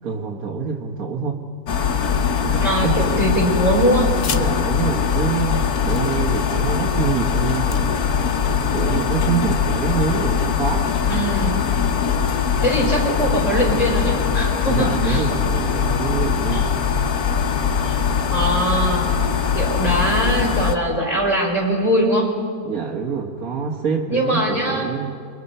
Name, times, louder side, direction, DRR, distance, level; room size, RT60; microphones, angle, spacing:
voice 1, 0.0-1.4 2.4-3.4 4.3-8.0 8.7-10.9 14.6-16.7 22.6-25.2, right 6 dB, 75° right, -1 dB, 1.9 m, -26 dB
sound 1, 1.7-20.8, left 6 dB, 85° left, 1.5 m, -21 dB
voice 2, 2.6-4.1 11.1-11.6 12.6-15.2 16.5-16.7 17.8-18.0 18.3-19.1 19.5-22.3 24.1-24.9, right 1 dB, 25° left, -1 dB, 4.9 m, -21 dB
sound 2, 4.1-4.4 5.2-5.3 5.7-6.6 7.2-7.8, left 6 dB, 60° left, 1.4 m, -34 dB
27.5 x 23.0 x 5.5 m, 2.3 s
omnidirectional pair, 1.5 m